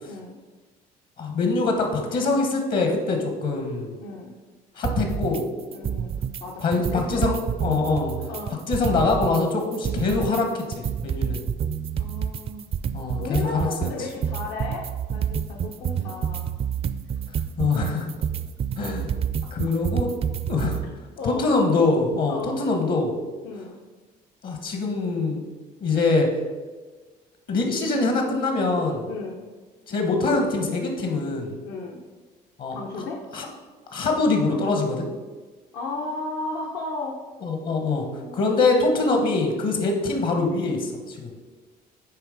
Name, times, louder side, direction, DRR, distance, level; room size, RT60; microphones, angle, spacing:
voice 1, 0.0-0.4 4.0-4.3 5.7-6.1 6.4-7.3 8.3-8.6 12.0-12.7 13.2-16.5 21.2-21.5 22.3-22.6 23.4-23.8 29.1-29.4 31.6-32.0 32.7-33.2 35.7-37.2 38.1-38.7 39.8-40.1, left 3 dB, 75° left, -1 dB, 0.9 m, -34 dB
voice 2, 1.2-3.9 4.8-5.4 6.6-7.3 7.6-8.1 8.7-11.4 12.9-13.9 17.6-18.1 18.8-19.1 19.5-20.1 20.5-20.8 21.2-23.1 24.4-25.4 25.8-26.3 27.5-29.0 29.9-31.6 32.6-32.8 33.3-33.5 33.9-35.0 37.4-38.0 38.3-41.3, left 3 dB, 60° left, 3 dB, 1.2 m, -24 dB
sound 1, 4.8-5.4 5.7-6.4 6.7-9.4 9.7-20.8, right 8 dB, 35° right, 0.4 m, -28 dB
9.7 x 3.3 x 5.0 m, 1.3 s
cardioid pair, 110°, 17 cm